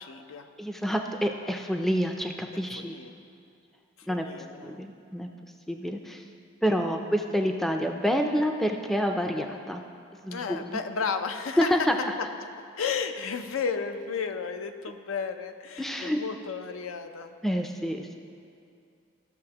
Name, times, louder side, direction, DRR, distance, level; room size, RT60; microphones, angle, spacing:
voice 1, 0.0-0.5 2.7-3.1 4.0-4.8 10.3-11.8 12.4-17.3, left 5 dB, 85° left, 7 dB, 0.5 m, -33 dB
voice 2, 0.6-2.9 4.1-6.2 6.6-9.8 10.2-10.8 11.6-12.1 15.8-16.2 17.4-18.2, equal, ahead, 4 dB, 0.3 m, -28 dB
14.5 x 6.3 x 2.9 m, 2.5 s
head